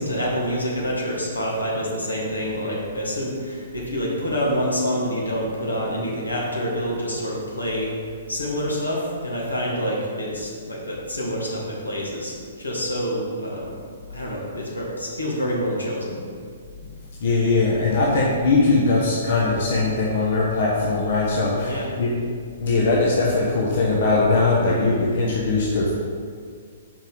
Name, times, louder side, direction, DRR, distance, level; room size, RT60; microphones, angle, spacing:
voice 1, 0.0-8.0 8.3-13.8 14.1-16.2 21.6-21.9, equal, 75° left, -4 dB, 1.8 m, -27 dB
voice 2, 17.2-22.1 22.6-26.0, left 3 dB, 50° left, -4 dB, 1.0 m, -20 dB
5.4 x 5.3 x 5.1 m, 2.1 s
figure-of-eight pair, 120°, 0 cm